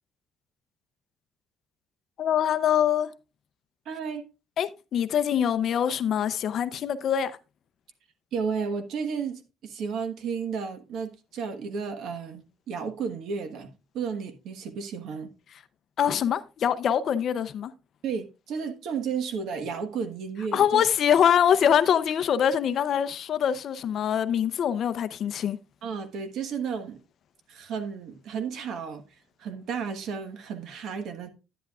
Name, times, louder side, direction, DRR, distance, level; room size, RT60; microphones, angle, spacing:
voice 1, 2.2-3.1 4.6-7.3 16.0-17.7 20.5-25.6, left 9 dB, 45° left, 0.6 m, -24 dB
voice 2, 3.8-4.2 8.3-15.3 18.0-20.9 25.8-27.0 27.5-29.0 29.4-31.3, right 6 dB, 60° right, 1.3 m, -33 dB
10.5 x 10.0 x 2.4 m
cardioid pair, 175°, 0 cm